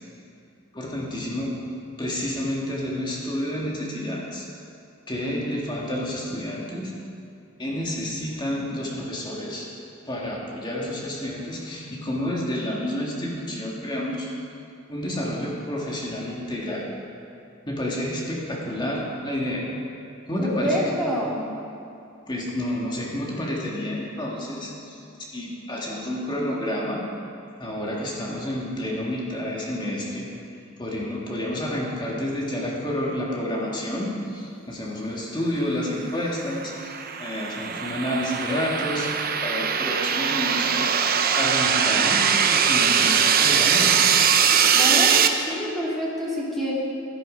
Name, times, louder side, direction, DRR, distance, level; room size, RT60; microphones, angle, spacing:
voice 1, 0.7-1.5 2.0-4.5 5.1-6.9 7.6-9.7 10.1-14.3 14.9-16.8 17.7-19.7 20.3-20.8 22.3-25.0 25.3-27.1 27.6-30.3 30.8-40.9 41.3-44.0, left 1 dB, 20° left, -3 dB, 2.0 m, -29 dB
voice 2, 20.4-21.4 44.7-46.7, equal, ahead, -7 dB, 2.5 m, -27 dB
sound 1, 36.3-45.3, right 7 dB, 45° right, 0.7 m, -21 dB
13.5 x 12.0 x 5.2 m, 2.6 s
head